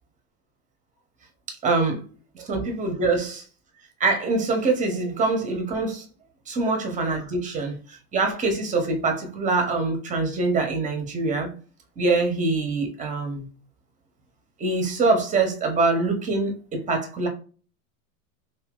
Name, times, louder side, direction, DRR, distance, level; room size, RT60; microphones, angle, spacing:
voice 1, 1.5-2.0 2.3-3.4 4.0-6.0 6.5-11.5 12.0-13.5 14.6-17.3, right 3 dB, 15° right, 0.9 m, -24 dB
2.8 x 2.8 x 3.7 m
hypercardioid pair, 120°, 46 cm